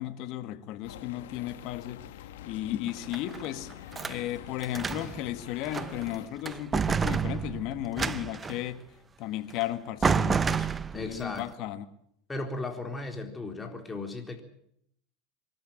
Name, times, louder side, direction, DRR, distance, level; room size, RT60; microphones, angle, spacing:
voice 1, 0.0-2.0 2.5-3.7 4.0-8.8 9.2-10.7 10.9-11.9, left 13 dB, 55° left, 1.8 m, -34 dB
sound 1, 0.8-6.3, left 12 dB, 75° left, 1.5 m, -45 dB
sound 2, 2.9-4.2 4.6-5.2 5.6-6.1 6.5-8.6 9.6-9.7 10.0-11.2, right 6 dB, 20° right, 0.8 m, -29 dB
voice 2, 10.9-11.7 12.3-14.4, left 2 dB, 15° left, 4.0 m, -36 dB
24.0 x 13.0 x 8.9 m
hypercardioid pair, 100°, 0 cm